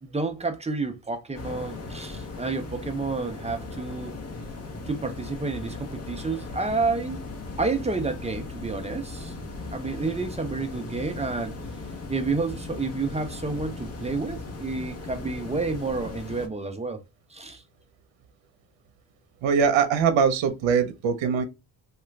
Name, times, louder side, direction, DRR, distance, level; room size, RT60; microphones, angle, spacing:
voice 1, 0.0-4.1 4.9-7.2 7.6-9.3 9.7-11.5 12.1-17.0 17.3-17.6, right 3 dB, 15° right, 0.5 m, -30 dB
sound 1, 1.3-16.5, left 3 dB, 35° left, 0.8 m, -38 dB
voice 2, 19.4-21.4, right 6 dB, 75° right, 0.8 m, -22 dB
3.0 x 2.4 x 3.2 m
cardioid pair, 100°, 46 cm